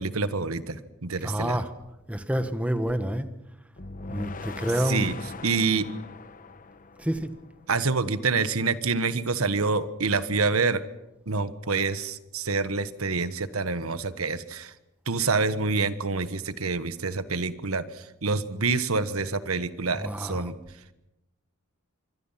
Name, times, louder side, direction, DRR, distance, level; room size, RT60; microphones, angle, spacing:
voice 1, 0.0-1.6 4.8-5.1 5.4-5.9 7.7-10.8 11.3-14.7 15.1-17.8 18.2-20.5, right 4 dB, 90° right, 12 dB, 1.4 m, -27 dB
voice 2, 1.2-1.7 2.1-3.3 4.1-5.2 7.0-7.3 19.9-20.5, equal, 5° right, 9 dB, 1.4 m, -28 dB
sound 1, 3.8-7.8, left 3 dB, 40° left, 1.0 m, -40 dB
26.0 x 23.5 x 5.8 m, 0.93 s
head